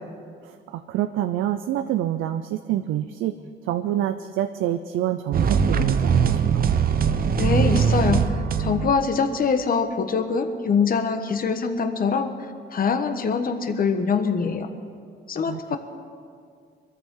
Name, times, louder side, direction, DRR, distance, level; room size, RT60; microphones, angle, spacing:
voice 1, 0.4-3.3 3.6-6.7 15.5-15.8, right 12 dB, 85° right, 9 dB, 0.6 m, -27 dB
sound 1, 5.3-9.1, right 6 dB, 45° right, 0.8 m, -21 dB
voice 2, 7.4-12.3 12.7-14.7 15.3-15.8, left 5 dB, 45° left, 7 dB, 1.3 m, -24 dB
22.0 x 14.0 x 3.8 m, 2.2 s
cardioid pair, 90°, 20 cm